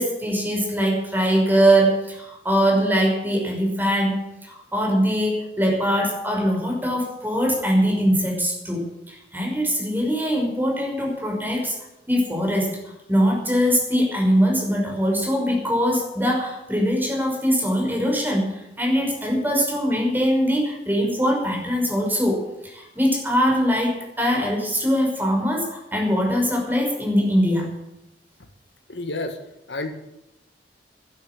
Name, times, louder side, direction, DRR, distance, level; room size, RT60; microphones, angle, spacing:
voice 1, 0.0-11.7 12.1-12.8 13.1-27.7, equal, 10° right, 0 dB, 5.7 m, -22 dB
voice 2, 28.9-29.4 29.7-29.9, left 2 dB, 80° left, 7 dB, 1.9 m, -29 dB
12.0 x 11.0 x 9.9 m, 0.88 s
head